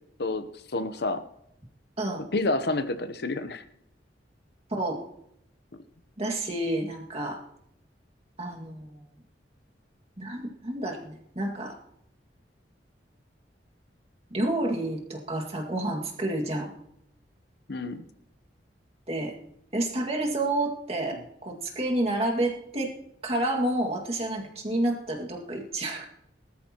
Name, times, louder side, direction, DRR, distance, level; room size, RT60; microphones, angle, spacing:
voice 1, 0.7-1.2 2.3-3.6 17.7-18.0, left 2 dB, 65° left, 11 dB, 0.9 m, -28 dB
voice 2, 4.7-5.0 6.2-7.4 8.4-9.1 10.2-11.8 14.3-16.7 19.1-19.3 19.7-22.9 23.2-26.0, right 1 dB, 35° right, 0 dB, 2.1 m, -29 dB
19.0 x 13.0 x 3.0 m, 0.75 s
head